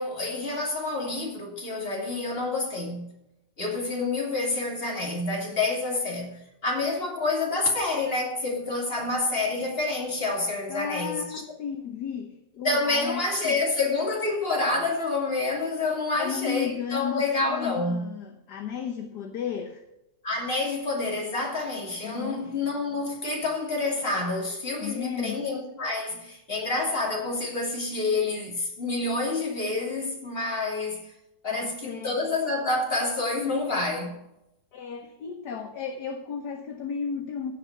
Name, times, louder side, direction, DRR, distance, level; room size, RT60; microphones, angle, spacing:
voice 1, 0.0-3.1 3.6-11.4 12.6-18.1 20.2-31.1 31.4-34.2, left 3 dB, 30° left, 3.1 m, -28 dB
voice 2, 10.7-13.6 16.1-19.8 22.0-22.4 24.8-25.4 31.5-32.2 34.7-37.5, left 7 dB, 65° left, 1.4 m, -34 dB
16.0 x 5.4 x 5.8 m
omnidirectional pair, 2.0 m